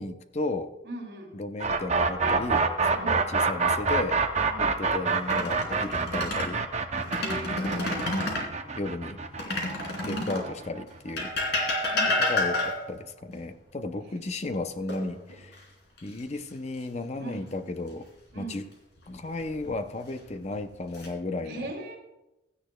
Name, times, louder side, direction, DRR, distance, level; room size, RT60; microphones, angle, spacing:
voice 1, 0.0-0.7 1.3-2.7 3.0-4.2 4.6-6.6 7.4-7.9 8.8-9.2 10.0-11.3 12.2-15.6 16.0-18.1 18.4-18.6 19.1-21.7, left 2 dB, 35° left, 9 dB, 0.6 m, -34 dB
voice 2, 0.8-1.4 2.9-3.4 4.5-4.8 7.1-8.1 10.0-10.4 11.9-12.2 17.2-17.5 18.3-18.7 21.4-22.0, right 2 dB, 60° right, -1 dB, 3.0 m, -40 dB
sound 1, 1.6-11.4, right 4 dB, 35° right, 0.7 m, -26 dB
sound 2, 5.1-6.5 7.0-8.5 9.4-10.5 11.2-13.0 14.9-15.6 16.0-16.2 19.1-19.7 20.4-21.1, left 2 dB, 60° left, 3.0 m, -29 dB
16.5 x 12.5 x 2.3 m, 0.97 s
head